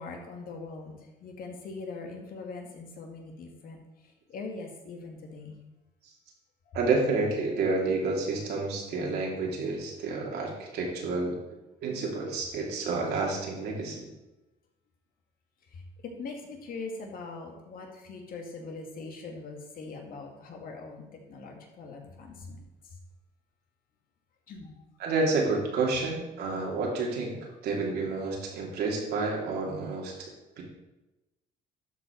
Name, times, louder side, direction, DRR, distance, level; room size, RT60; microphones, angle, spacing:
voice 1, 0.0-3.8 4.3-5.6 6.7-6.8 15.7-15.8 16.2-21.0 21.3-22.6 24.5-24.8, left 3 dB, 60° left, 2 dB, 2.0 m, -41 dB
voice 2, 6.7-11.3 11.8-14.1 25.0-27.3 27.6-30.1 30.6-30.7, right 3 dB, 75° right, -2 dB, 2.7 m, -29 dB
12.0 x 5.0 x 4.6 m, 1.0 s
cardioid pair, 110°, 17 cm